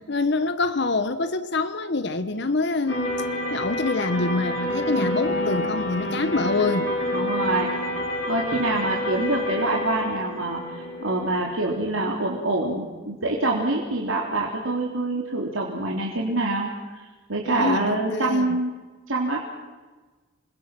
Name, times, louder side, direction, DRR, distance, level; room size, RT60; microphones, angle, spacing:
voice 1, 0.1-3.1 3.5-6.9 17.5-18.6, left 3 dB, 55° left, 1.1 m, -25 dB
sound 1, 2.9-11.6, left 1 dB, 75° left, 5.7 m, -28 dB
voice 2, 7.1-7.7 8.3-10.6 11.0-16.7 17.3-18.7 19.1-19.4, right 2 dB, 80° right, 3.3 m, -25 dB
27.5 x 22.0 x 6.1 m
head